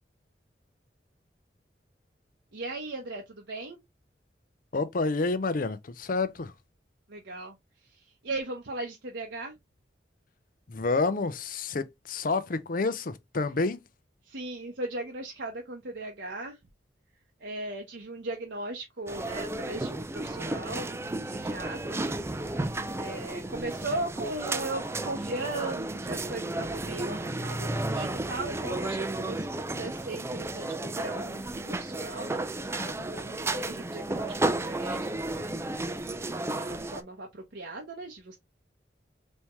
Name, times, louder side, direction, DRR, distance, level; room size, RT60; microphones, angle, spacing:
voice 1, 2.5-3.8 7.1-7.5 7.9-9.5 14.3-16.6 17.4-22.3 23.0-35.5 36.0-36.2 36.4-38.4, right 2 dB, 80° right, 0.9 m, -38 dB
voice 2, 4.7-6.5 10.7-13.8, left 3 dB, 50° left, 0.6 m, -29 dB
sound 1, 19.1-37.0, right 2 dB, 15° right, 0.4 m, -33 dB
4.2 x 3.5 x 3.0 m
head